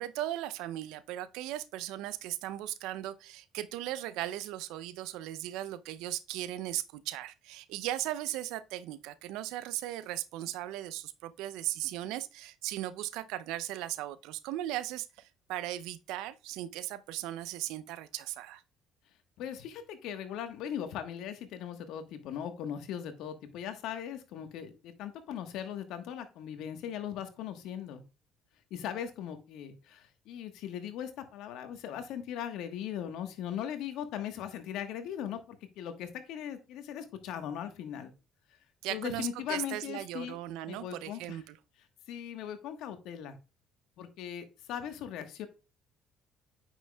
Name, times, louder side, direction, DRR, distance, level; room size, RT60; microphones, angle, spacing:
voice 1, 0.0-18.6 38.8-41.6, right 14 dB, 75° right, 0.5 m, -37 dB
voice 2, 19.4-28.0 28.7-38.1 38.9-40.4 40.7-41.4 42.1-43.4 44.0-45.5, left 9 dB, 70° left, 1.2 m, -39 dB
9.3 x 6.0 x 2.3 m
hypercardioid pair, 60°, 0 cm